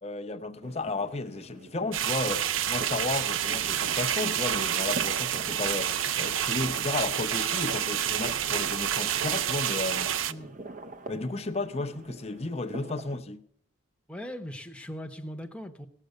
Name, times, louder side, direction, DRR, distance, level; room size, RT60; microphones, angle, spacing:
voice 1, 0.0-10.1 11.1-13.4, left 3 dB, 30° left, 0.7 m, -33 dB
sound 1, 0.6-13.2, right 2 dB, 40° right, 0.7 m, -45 dB
sound 2, 1.9-10.3, right 10 dB, 75° right, 0.5 m, -28 dB
voice 2, 10.3-10.6 14.1-15.9, equal, 5° left, 0.9 m, -39 dB
17.5 x 6.6 x 8.1 m
head